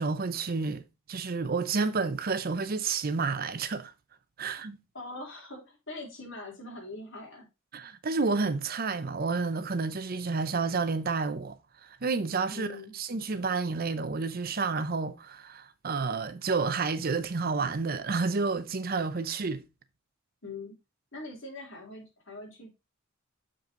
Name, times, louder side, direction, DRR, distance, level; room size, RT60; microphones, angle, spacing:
voice 1, 0.0-3.9 4.4-4.8 7.7-12.7 12.9-19.6, right 4 dB, 45° right, 0.7 m, -30 dB
voice 2, 4.9-7.5 12.5-12.9 20.4-20.8 21.1-22.7, left 2 dB, 65° left, 3.6 m, -42 dB
6.9 x 5.7 x 3.8 m
head